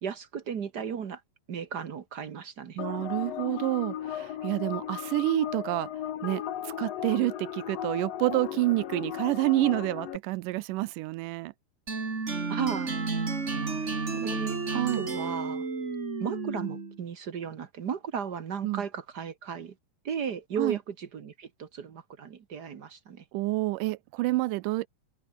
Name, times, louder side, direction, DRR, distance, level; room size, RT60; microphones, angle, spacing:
voice 1, 0.0-1.2 1.5-2.8 12.5-13.1 14.2-14.6 14.9-15.6 16.2-19.7 20.0-23.2, right 7 dB, 55° right, 1.1 m, -35 dB
sound 1, 2.8-10.2, left 11 dB, 60° left, 2.2 m, -36 dB
voice 2, 2.8-5.9 6.2-11.5 13.6-13.8 14.1-14.4 14.7-15.0 18.6-18.8 20.6-20.8 23.3-24.9, right 19 dB, 90° right, 2.2 m, -29 dB
sound 2, 11.9-17.0, right 4 dB, 25° right, 2.3 m, -32 dB
omnidirectional pair, 3.7 m